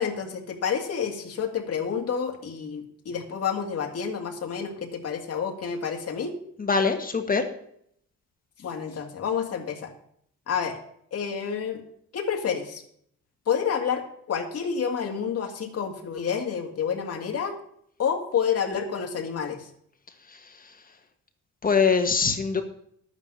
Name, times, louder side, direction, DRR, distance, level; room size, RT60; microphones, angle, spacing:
voice 1, 0.0-6.3 8.6-9.9 10.5-10.8 11.1-11.8 12.1-12.8 13.5-17.5 18.0-19.7, left 7 dB, 55° left, 2 dB, 2.1 m, -29 dB
voice 2, 6.6-7.5 20.3-20.4 21.6-22.6, left 5 dB, 30° left, 5 dB, 1.4 m, -23 dB
11.5 x 9.0 x 5.5 m, 0.68 s
wide cardioid pair, 160°, 30 cm